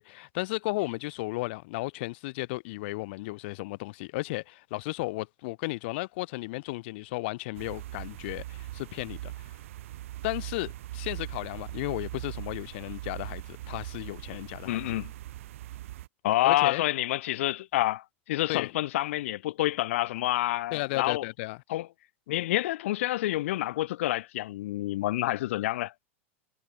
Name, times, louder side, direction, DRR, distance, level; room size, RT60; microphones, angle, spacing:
voice 1, 0.0-9.3 10.2-14.8 16.4-16.8 18.5-18.7 20.7-21.6, left 22 dB, 55° left, 1.9 m, -34 dB
sound 1, 7.6-16.1, right 15 dB, 75° right, 1.3 m, -40 dB
voice 2, 14.7-15.1 16.2-21.3 21.7-21.9 22.3-25.9, left 15 dB, 70° left, 1.0 m, -28 dB
supercardioid pair, 155°, 7 cm